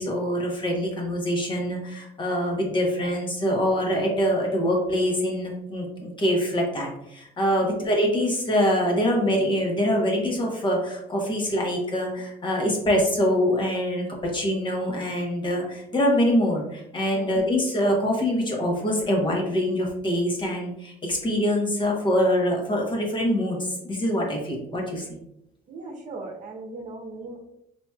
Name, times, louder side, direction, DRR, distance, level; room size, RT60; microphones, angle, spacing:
voice 1, 0.0-25.1, equal, 30° left, 0 dB, 1.0 m, -24 dB
voice 2, 25.7-27.4, right 2 dB, 45° right, 1 dB, 0.8 m, -38 dB
4.3 x 2.9 x 2.3 m, 0.79 s
cardioid pair, 110°, 17 cm